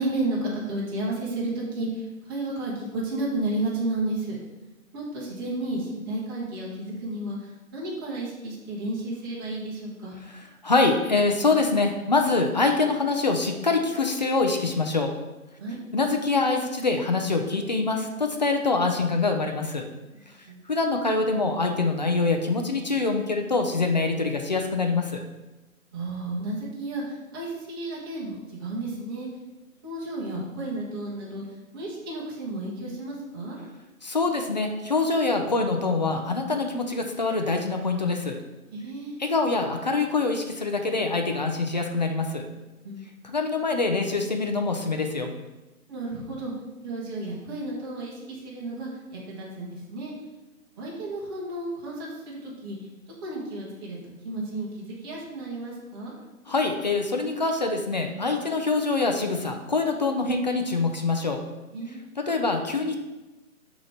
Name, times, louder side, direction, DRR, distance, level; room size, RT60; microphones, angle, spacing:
voice 1, 0.0-4.4 4.9-10.2 15.6-15.8 20.1-20.6 25.9-29.3 29.8-31.4 31.7-33.6 38.7-39.2 42.8-43.1 45.9-46.5 46.8-50.1 50.8-52.8 53.2-56.1 61.7-62.1, right 2 dB, 15° right, -6 dB, 0.9 m, -32 dB
voice 2, 10.6-15.1 15.9-19.8 20.7-25.2 34.0-38.4 39.2-42.4 43.2-45.3 56.5-61.4 62.2-63.0, left 3 dB, 30° left, 4 dB, 0.5 m, -25 dB
6.1 x 3.0 x 5.6 m, 1.1 s
figure-of-eight pair, 145°, 42 cm